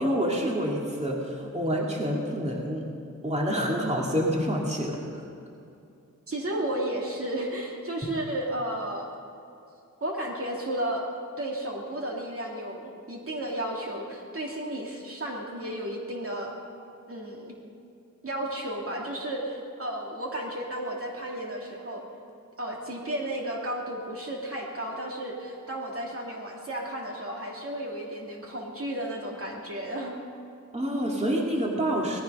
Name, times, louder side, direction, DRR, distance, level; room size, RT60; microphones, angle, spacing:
voice 1, 0.0-2.9 3.2-5.2 30.7-32.2, equal, 20° right, -2 dB, 2.4 m, -27 dB
voice 2, 6.3-9.1 10.0-11.1 11.4-16.5 17.1-17.5 18.2-22.0 22.6-30.2, right 1 dB, 45° right, -1 dB, 2.5 m, -33 dB
18.5 x 14.0 x 5.5 m, 2.6 s
wide cardioid pair, 85°, 31 cm